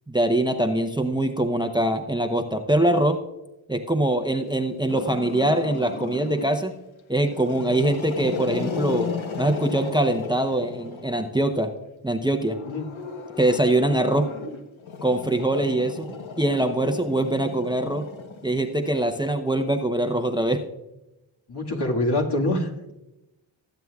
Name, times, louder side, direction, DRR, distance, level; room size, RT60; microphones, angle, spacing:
voice 1, 0.1-3.2 3.7-6.7 7.1-9.1 9.4-11.7 12.0-12.6 13.4-14.3 15.0-16.1 16.4-18.1 18.4-20.6, right 1 dB, 10° right, 6 dB, 0.8 m, -23 dB
Growling, 4.9-6.6 7.2-11.3 12.3-18.8, left 4 dB, 75° left, 1.1 m, -35 dB
voice 2, 21.5-22.9, left 1 dB, 55° left, 0 dB, 1.9 m, -25 dB
20.0 x 7.8 x 2.4 m, 0.95 s
cardioid pair, 45°, 47 cm